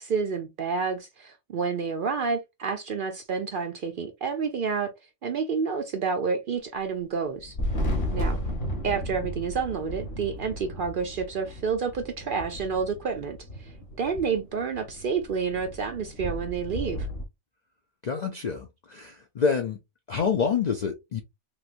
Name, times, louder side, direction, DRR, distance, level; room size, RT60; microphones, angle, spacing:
voice 1, 0.0-4.9 5.2-7.5 8.1-8.4 8.8-17.1, right 5 dB, 60° right, 0.6 m, -29 dB
Thunder, 7.4-17.2, equal, 45° left, 1.1 m, -34 dB
voice 2, 18.0-19.8 20.1-21.2, left 6 dB, 60° left, 0.4 m, -27 dB
3.3 x 3.1 x 2.4 m
omnidirectional pair, 1.3 m